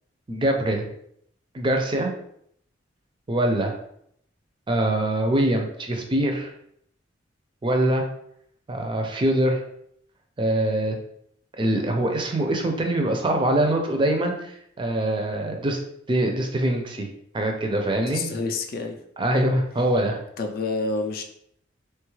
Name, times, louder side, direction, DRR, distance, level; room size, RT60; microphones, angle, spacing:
voice 1, 0.3-0.9 1.5-2.1 3.3-3.8 4.7-6.5 7.6-8.1 8.7-9.6 10.4-11.0 11.6-15.8 16.1-17.1 17.3-18.3 19.2-20.2, right 1 dB, 25° right, 3 dB, 0.4 m, -23 dB
voice 2, 18.0-19.0 20.4-21.2, left 3 dB, 50° left, 4 dB, 0.3 m, -28 dB
3.1 x 2.3 x 3.1 m, 0.70 s
head